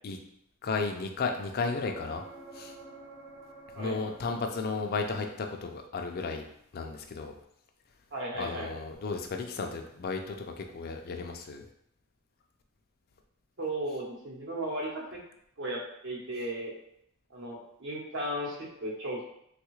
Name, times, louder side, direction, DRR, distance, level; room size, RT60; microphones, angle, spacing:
voice 1, 0.6-2.2 2.5-2.7 3.8-6.5 6.7-7.3 8.4-11.6, left 4 dB, 45° left, 4 dB, 0.4 m, -34 dB
sound 1, 1.5-5.3 8.9-9.0, right 3 dB, 35° right, 0.6 m, -49 dB
voice 2, 8.1-8.7 13.6-15.2 15.6-16.7 17.3-19.2, right 1 dB, 55° right, -3 dB, 0.9 m, -35 dB
3.5 x 2.4 x 3.0 m, 0.73 s
head